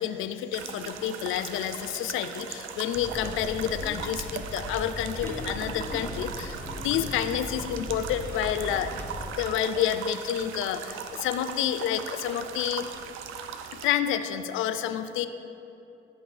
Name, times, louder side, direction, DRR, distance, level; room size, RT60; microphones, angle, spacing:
voice 1, 0.0-8.9 9.3-12.9 13.8-15.3, left 10 dB, 85° left, 10 dB, 0.4 m, -29 dB
sound 1, 0.5-13.9, right 7 dB, 85° right, 0.5 m, -39 dB
sound 2, 2.9-9.3, equal, 10° left, 0.8 m, -38 dB
11.0 x 5.5 x 3.4 m, 2.8 s
cardioid pair, 90°, 20 cm